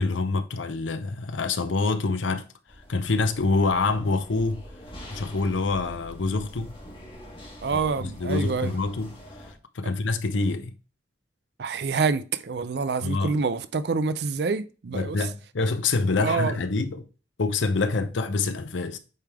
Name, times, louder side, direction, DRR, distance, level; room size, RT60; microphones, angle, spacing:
voice 1, 0.0-2.4 2.9-4.6 5.1-6.7 7.7-7.8 8.2-9.1 9.7-10.7 13.0-13.4 14.9-17.0 17.4-19.0, left 3 dB, 85° left, 0.7 m, -26 dB
sound 1, 2.7-9.5, equal, 30° left, 1.4 m, -44 dB
voice 2, 7.6-8.7 9.8-9.9 11.6-15.3 16.2-16.6, right 4 dB, 60° right, 0.4 m, -27 dB
8.3 x 3.4 x 3.5 m
head